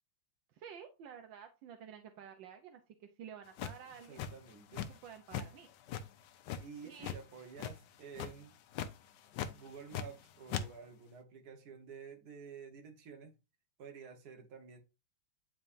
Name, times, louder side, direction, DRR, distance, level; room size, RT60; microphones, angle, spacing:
voice 1, 0.5-4.2 4.9-5.7 6.8-7.1, right 8 dB, 75° right, 1.4 m, -51 dB
sound 1, 3.6-5.0 5.3-5.5 5.9-7.2 7.6-7.9 8.1-8.4 8.7-8.9 9.3-10.2 10.5-10.6, left 8 dB, 75° left, 1.2 m, -39 dB
voice 2, 4.1-4.9 6.6-8.5 9.5-13.3 13.8-14.8, right 6 dB, 55° right, 1.7 m, -51 dB
9.0 x 4.3 x 2.6 m
omnidirectional pair, 2.1 m